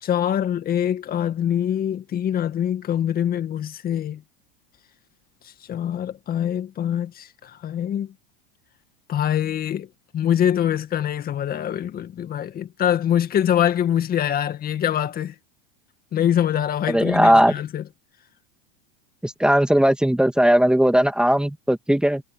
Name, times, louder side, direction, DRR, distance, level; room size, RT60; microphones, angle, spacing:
voice 1, 0.0-4.2 5.4-8.1 9.1-9.9 10.1-15.3 16.1-17.8, left 10 dB, 30° left, 2.0 m, -24 dB
voice 2, 16.9-17.5 19.2-22.2, equal, 5° right, 2.0 m, -18 dB
supercardioid pair, 125°, 29 cm